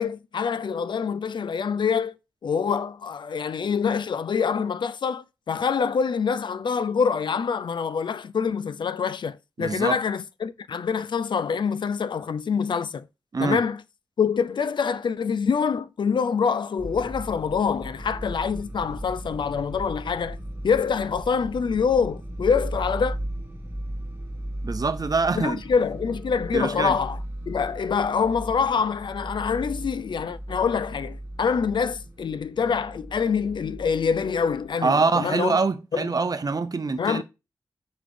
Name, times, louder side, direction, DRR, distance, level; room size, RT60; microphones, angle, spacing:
voice 1, 0.0-2.1 2.4-13.1 13.4-13.8 14.2-20.4 20.6-23.2 25.4-27.2 27.5-35.6 35.9-36.1 37.0-37.2, left 6 dB, 75° left, 0.4 m, -25 dB
voice 2, 9.6-10.0 13.3-13.6 24.6-25.6 26.5-27.0 34.8-37.2, right 4 dB, 50° right, 0.7 m, -24 dB
sound 1, 16.8-34.7, right 1 dB, 30° right, 1.4 m, -37 dB
5.1 x 4.0 x 4.9 m
cardioid pair, 45°, 8 cm